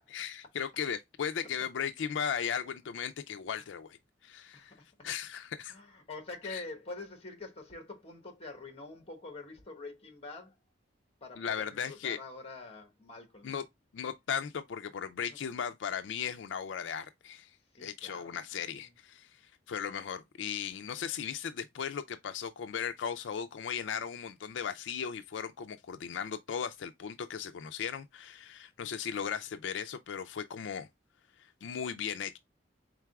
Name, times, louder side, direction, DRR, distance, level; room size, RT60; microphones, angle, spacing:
voice 1, 0.1-4.0 4.2-4.7 5.0-5.7 6.5-6.6 11.4-12.2 13.4-13.6 13.9-17.5 17.8-19.3 19.7-30.9 31.6-32.4, left 7 dB, 90° left, 0.4 m, -37 dB
voice 2, 4.5-5.1 5.7-10.6 11.2-13.5 15.3-15.4 17.7-18.9, left 3 dB, 35° left, 1.2 m, -46 dB
4.6 x 3.8 x 2.2 m
head